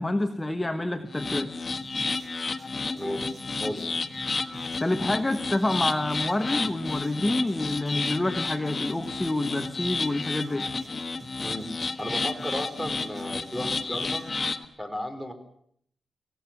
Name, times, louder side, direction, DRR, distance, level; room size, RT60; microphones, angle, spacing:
voice 1, 0.0-1.5 4.8-10.7, left 2 dB, 15° left, 7 dB, 1.3 m, -27 dB
sound 1, 1.1-14.7, left 4 dB, 40° left, 1.4 m, -32 dB
sound 2, 1.8-14.3, right 2 dB, 45° right, 6.7 m, -50 dB
voice 2, 2.9-3.3 3.6-3.9 11.4-14.3 14.8-15.3, equal, 5° right, 7 dB, 4.0 m, -34 dB
26.0 x 16.5 x 7.2 m, 0.65 s
wide cardioid pair, 110°, 0 cm